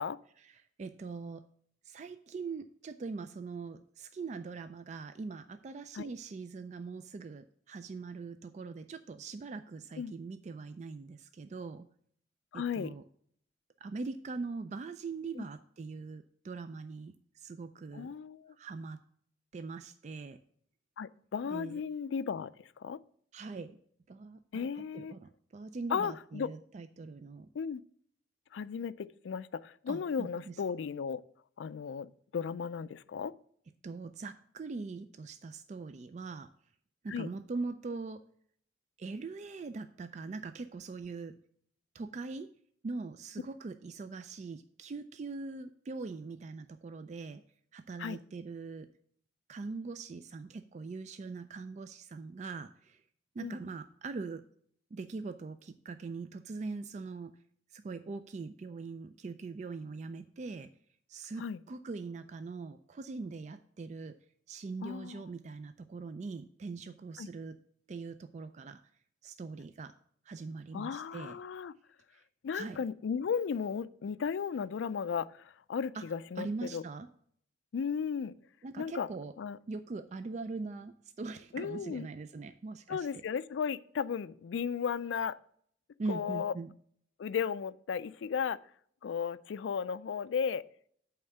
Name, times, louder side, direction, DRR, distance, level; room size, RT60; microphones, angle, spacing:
voice 1, 0.4-1.4 1.8-11.9 12.5-13.0 13.8-18.1 18.6-19.0 19.5-20.4 21.4-21.8 23.3-23.8 24.1-27.5 29.9-30.6 33.8-36.5 37.0-38.2 39.0-41.3 41.9-42.5 42.8-47.4 47.7-48.9 49.5-53.0 53.4-54.4 54.9-57.3 57.7-60.7 61.1-64.1 64.5-67.6 67.9-68.8 69.2-69.9 70.3-71.3 72.1-72.2 72.5-72.8 75.9-76.0 76.4-77.1 78.6-79.3 79.7-83.2 86.0-86.7, right 4 dB, 40° right, 10 dB, 0.3 m, -42 dB
voice 2, 12.5-12.9 15.4-15.5 17.9-18.5 21.0-23.0 24.5-25.1 25.9-26.5 27.5-27.8 28.5-31.2 31.6-33.3 37.1-37.3 48.0-48.2 53.4-53.6 61.4-61.6 64.8-65.2 67.2-67.3 70.7-71.7 72.4-75.3 75.7-76.8 77.7-78.3 78.8-79.1 79.4-79.6 81.5-82.1 82.9-85.4 86.1-86.5 87.2-88.6 89.0-90.6, left 6 dB, 85° left, 16 dB, 0.3 m, -35 dB
8.6 x 3.6 x 6.7 m, 0.62 s
head